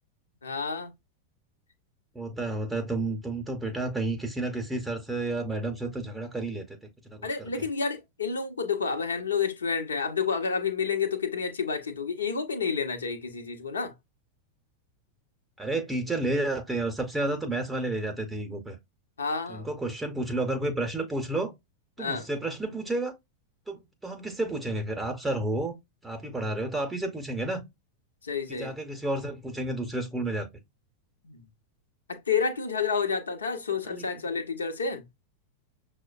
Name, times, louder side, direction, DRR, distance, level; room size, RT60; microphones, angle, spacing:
voice 1, 0.4-0.9 7.2-13.9 19.2-19.7 22.0-22.3 28.2-28.7 31.3-31.4 32.1-35.1, left 5 dB, 70° left, 0.7 m, -29 dB
voice 2, 2.1-7.5 15.6-18.8 19.5-21.5 22.0-23.1 23.7-25.7 26.0-27.6 28.5-30.5 33.8-34.1, right 2 dB, 10° right, 0.7 m, -31 dB
6.2 x 2.1 x 2.3 m
figure-of-eight pair, 90°, 0 cm